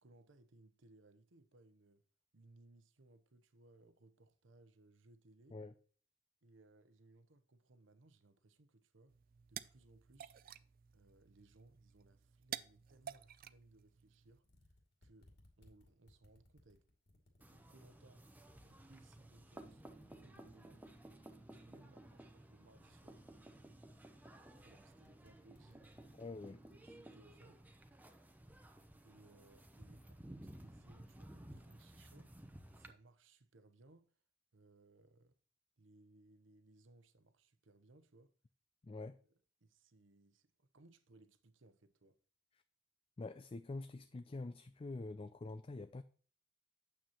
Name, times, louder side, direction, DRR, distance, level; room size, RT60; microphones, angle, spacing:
voice 1, 0.0-2.0 2.3-5.6 6.4-9.1 9.5-10.4 10.9-14.5 15.0-16.9 17.5-18.2 18.6-19.8 20.2-20.8 21.5-23.3 24.6-26.0 26.7-27.6 29.0-32.3 32.7-34.1 34.5-35.4 35.8-38.3 38.9-39.3 39.6-42.2, right 2 dB, 85° right, 0.9 m, -65 dB
sound 1, 9.1-14.4, right 10 dB, 50° right, 0.4 m, -52 dB
sound 2, 14.1-14.2 14.4-19.1 19.5-27.0, left 1 dB, 60° left, 2.5 m, -68 dB
sound 3, 17.4-32.9, right 1 dB, 10° right, 0.8 m, -56 dB
voice 2, 26.2-26.6 38.8-39.2 43.2-46.0, left 3 dB, 30° left, 0.4 m, -46 dB
8.9 x 7.3 x 3.0 m
head